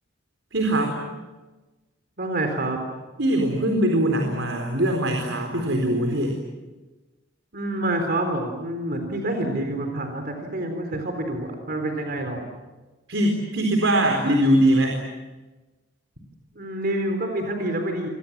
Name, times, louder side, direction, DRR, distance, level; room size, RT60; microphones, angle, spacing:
voice 1, 0.5-1.0 3.2-6.4 13.1-15.0, right 1 dB, 85° right, 3 dB, 4.3 m, -21 dB
voice 2, 2.2-2.8 7.5-12.4 16.5-18.1, right 1 dB, 55° right, 4 dB, 4.0 m, -27 dB
28.5 x 24.5 x 7.5 m, 1.2 s
head